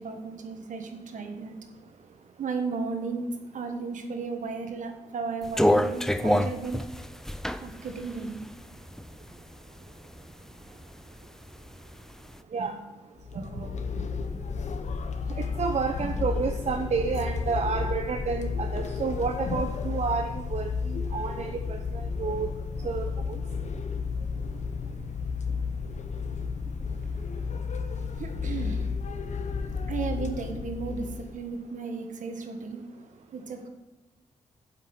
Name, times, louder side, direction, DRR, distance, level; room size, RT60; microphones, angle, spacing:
voice 1, 0.0-1.6 2.4-6.8 7.6-8.4 12.6-12.7 13.3-14.6 16.0-16.2 26.2-26.4 28.2-28.8 29.9-32.8 33.3-33.7, right 4 dB, 75° right, 5 dB, 1.4 m, -35 dB
sound 1, 5.4-9.4 9.9-10.9 11.2-12.2, left 1 dB, 5° left, 0.5 m, -26 dB
sound 2, 13.2-31.4, left 5 dB, 65° left, 0.9 m, -32 dB
voice 2, 15.4-22.5 22.8-23.4, right 5 dB, 60° right, 4 dB, 0.8 m, -30 dB
7.6 x 6.0 x 7.8 m, 1.1 s
cardioid pair, 60°, 13 cm